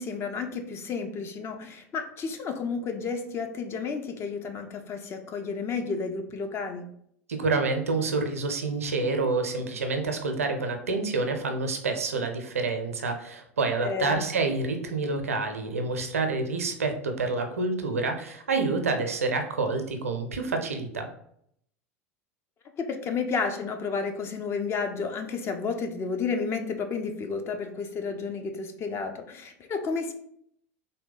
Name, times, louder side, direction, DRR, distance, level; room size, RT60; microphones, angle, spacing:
voice 1, 0.0-6.9 13.8-14.2 22.8-30.1, left 5 dB, 35° left, 6 dB, 0.5 m, -31 dB
voice 2, 7.3-21.1, right 3 dB, 80° right, 6 dB, 0.5 m, -28 dB
3.4 x 2.2 x 3.9 m, 0.69 s
figure-of-eight pair, 75°, 8 cm